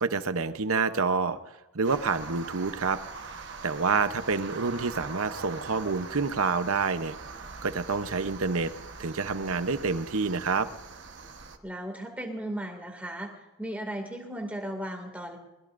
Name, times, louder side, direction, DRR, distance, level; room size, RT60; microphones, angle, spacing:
voice 1, 0.0-1.4 1.7-3.0 3.6-7.1 7.6-8.7 9.0-10.7, right 4 dB, 75° right, 11 dB, 0.9 m, -27 dB
sound 1, 1.8-11.6, right 4 dB, 50° right, 1.3 m, -42 dB
voice 2, 11.6-13.3 13.6-15.4, right 1 dB, 5° right, 2 dB, 2.3 m, -36 dB
22.5 x 21.0 x 2.6 m, 1.1 s
head